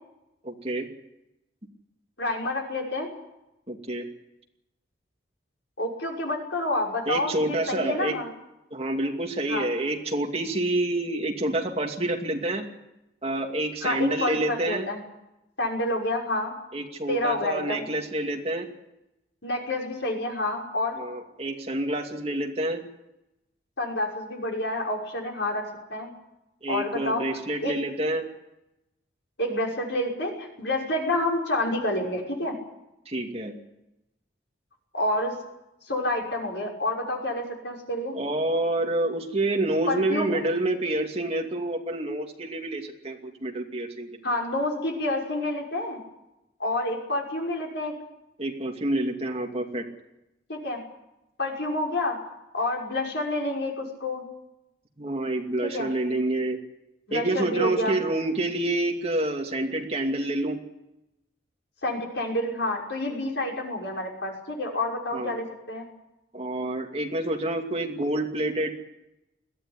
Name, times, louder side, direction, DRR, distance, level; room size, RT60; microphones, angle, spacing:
voice 1, 0.4-0.9 3.7-4.0 7.1-8.2 8.7-12.7 13.2-14.9 16.7-18.7 21.0-22.8 26.6-28.3 33.1-33.6 38.1-44.3 48.4-49.9 55.0-56.6 57.1-60.6 65.1-65.4 66.3-68.7, right 1 dB, 35° right, 2 dB, 2.5 m, -28 dB
voice 2, 2.2-3.1 5.8-8.3 9.5-9.7 13.8-15.0 15.6-16.5 17.1-17.9 19.4-21.0 23.8-25.6 25.9-26.1 26.7-27.2 27.6-27.7 29.4-32.5 34.9-35.4 35.9-38.2 39.9-40.4 44.2-46.0 46.6-47.9 50.5-50.8 51.4-52.2 52.5-54.2 55.6-55.9 57.1-58.0 61.8-65.9, left 1 dB, 75° left, 0 dB, 5.9 m, -28 dB
21.5 x 16.0 x 9.9 m, 0.91 s
head